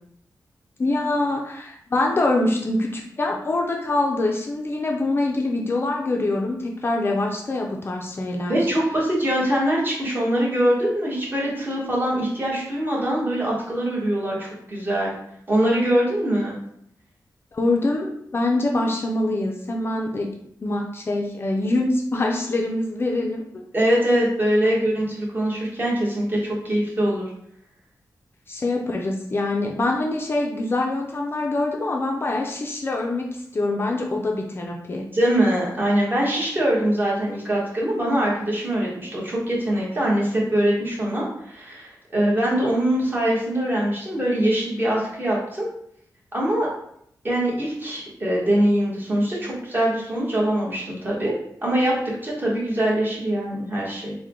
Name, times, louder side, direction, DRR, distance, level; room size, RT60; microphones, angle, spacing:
voice 1, 0.8-8.6 17.5-20.3 20.6-23.4 24.6-24.8 28.5-35.0, left 2 dB, 35° left, 0 dB, 0.4 m, -24 dB
voice 2, 8.5-15.1 15.5-16.5 23.7-27.2 35.1-45.7 46.3-46.7 47.2-51.9 52.2-54.1, right 1 dB, 30° right, -5 dB, 1.2 m, -23 dB
3.6 x 2.1 x 4.4 m, 0.70 s
wide cardioid pair, 150°, 7 cm